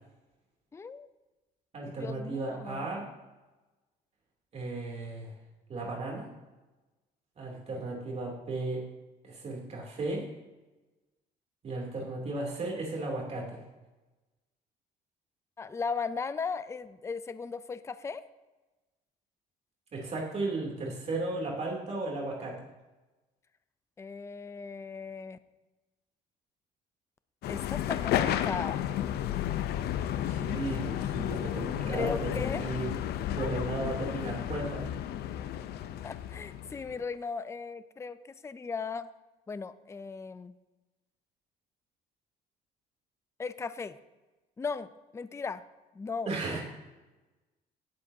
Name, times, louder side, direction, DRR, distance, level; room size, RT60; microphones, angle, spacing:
voice 1, 0.7-1.1 2.0-2.9 15.6-18.3 24.0-25.4 27.5-28.8 31.9-32.7 36.0-38.2 38.4-39.1 39.5-40.5 43.4-44.0 44.6-45.6 45.9-46.3, left 5 dB, 15° left, 14 dB, 0.5 m, -37 dB
voice 2, 1.7-3.0 4.5-5.3 5.7-6.3 7.4-8.8 9.2-10.2 11.6-13.6 19.9-22.6 30.2-32.9 33.3-34.9 46.3-46.6, right 2 dB, 40° right, -2 dB, 3.0 m, -35 dB
sound 1, 27.4-37.0, left 11 dB, 70° left, 0.7 m, -32 dB
18.0 x 7.7 x 2.8 m, 1.1 s
cardioid pair, 110°, 17 cm